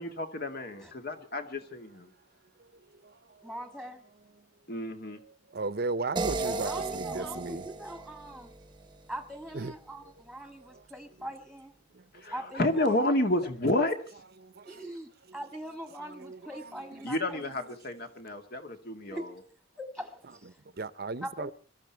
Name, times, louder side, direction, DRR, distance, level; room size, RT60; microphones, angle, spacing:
voice 1, 0.0-2.1 4.7-5.2 12.2-14.0 17.0-19.2, left 1 dB, 50° left, 2.2 m, -30 dB
voice 2, 3.4-4.0 6.4-8.5 9.1-11.7 12.3-13.1 13.6-13.7 14.6-17.5 19.1-19.3 19.8-20.6 21.2-21.5, right 1 dB, ahead, 1.7 m, -42 dB
voice 3, 5.5-7.6 9.5-9.7 11.9-12.0 14.4-14.7 16.1-16.4 20.8-21.5, right 3 dB, 50° right, 0.8 m, -35 dB
sound 1, 6.2-9.2, right 3 dB, 25° right, 1.0 m, -35 dB
22.0 x 13.5 x 4.6 m
head